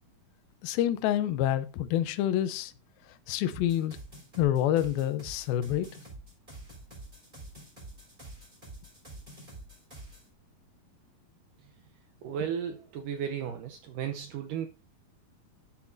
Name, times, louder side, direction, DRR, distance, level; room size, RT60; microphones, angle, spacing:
voice 1, 0.6-2.7 3.3-4.0 4.4-5.9, left 12 dB, 80° left, 2.5 m, -27 dB
sound 1, 3.5-10.3, right 2 dB, 10° right, 4.6 m, -47 dB
voice 2, 12.2-14.7, right 8 dB, 75° right, 2.0 m, -34 dB
11.5 x 8.4 x 2.6 m
omnidirectional pair, 4.5 m